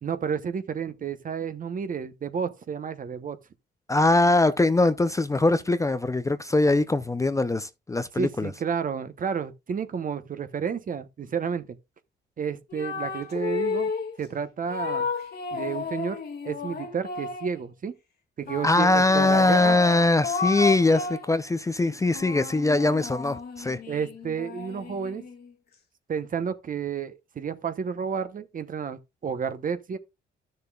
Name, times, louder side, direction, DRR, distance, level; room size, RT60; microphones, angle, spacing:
voice 1, 0.0-3.4 8.2-11.8 12.4-13.9 14.2-15.1 15.5-16.2 16.4-17.9 18.4-19.8 23.9-25.2 26.1-30.0, right 6 dB, 45° right, 0.9 m, -31 dB
voice 2, 3.9-8.5 18.6-23.8, left 2 dB, 15° left, 0.5 m, -22 dB
sound 1, 12.7-14.2 14.7-17.6 18.5-21.3 21.9-25.5, left 5 dB, 55° left, 1.5 m, -33 dB
12.5 x 6.7 x 2.3 m
cardioid pair, 90°, 20 cm